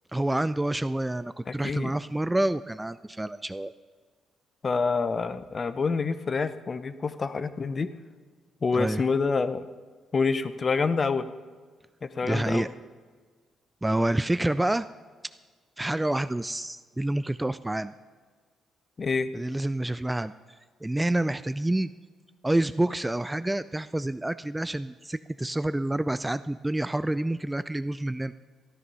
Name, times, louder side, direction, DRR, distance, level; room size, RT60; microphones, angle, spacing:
voice 1, 0.1-3.7 8.7-9.0 12.2-12.7 13.8-14.9 15.8-17.9 19.3-20.3 20.8-21.9 22.4-28.3, right 1 dB, 10° right, 14 dB, 0.3 m, -28 dB
voice 2, 1.5-1.9 4.6-7.9 8.6-9.7 10.1-11.3 12.0-12.7 19.0-19.3, left 4 dB, 35° left, 13 dB, 0.7 m, -27 dB
14.0 x 9.6 x 5.5 m, 1.5 s
cardioid pair, 90°, 0 cm